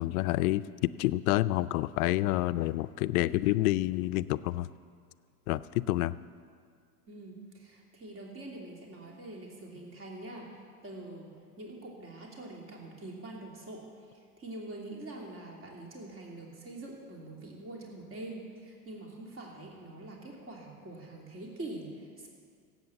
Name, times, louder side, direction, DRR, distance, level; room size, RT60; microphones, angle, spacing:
voice 1, 0.0-4.7 5.5-6.2, left 17 dB, 70° left, 16 dB, 0.6 m, -28 dB
voice 2, 7.1-10.5 10.8-11.3 11.6-13.9 14.4-22.3, right 2 dB, 30° right, -1 dB, 2.9 m, -44 dB
17.0 x 8.1 x 7.0 m, 2.2 s
supercardioid pair, 115°, 44 cm